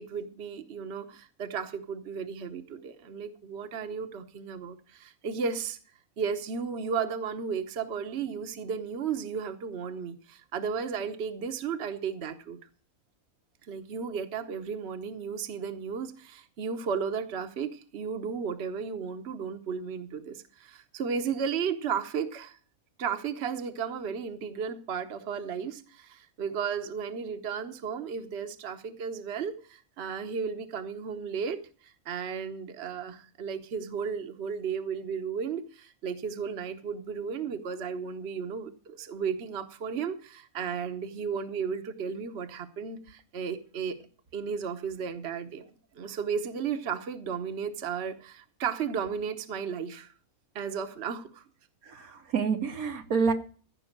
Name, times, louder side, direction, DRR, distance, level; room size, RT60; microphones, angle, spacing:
voice 1, 0.0-5.8 6.2-12.6 13.7-22.6 23.0-44.0 44.3-50.1 50.5-51.4, right 6 dB, 50° right, 8 dB, 1.2 m, -34 dB
voice 2, 51.8-53.3, right 5 dB, 80° right, 6 dB, 1.7 m, -28 dB
15.0 x 5.8 x 7.3 m, 0.41 s
omnidirectional pair, 1.5 m